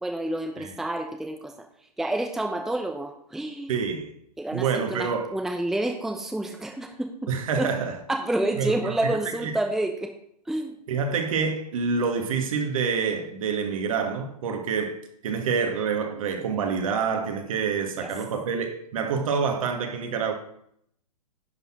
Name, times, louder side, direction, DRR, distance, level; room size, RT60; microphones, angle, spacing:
voice 1, 0.0-1.5 2.0-3.7 4.4-7.3 7.6-7.7 8.1-10.1 10.5-10.7 18.0-18.1, right 1 dB, ahead, 0.7 m, -29 dB
voice 2, 3.7-4.1 4.5-5.4 7.3-8.0 8.6-9.1 9.4-9.5 10.9-20.3, right 6 dB, 55° right, 2.0 m, -27 dB
10.5 x 5.7 x 6.0 m
figure-of-eight pair, 120°, 21 cm